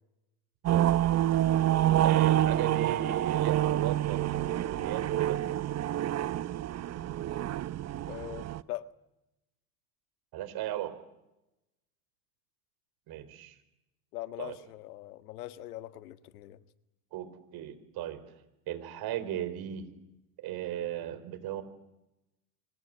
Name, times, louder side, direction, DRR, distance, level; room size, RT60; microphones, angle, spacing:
sound 1, 0.6-8.6, right 12 dB, 35° right, 0.9 m, -27 dB
voice 1, 2.0-5.4 10.3-10.9 13.1-13.6 14.4-14.5 17.1-17.3 17.5-18.2 18.7-19.9 20.4-21.6, right 12 dB, 55° right, 12 dB, 4.2 m, -36 dB
voice 2, 8.1-8.9 14.1-16.6, left 14 dB, 80° left, 12 dB, 1.7 m, -41 dB
25.0 x 19.5 x 9.7 m, 0.91 s
hypercardioid pair, 90°, 45 cm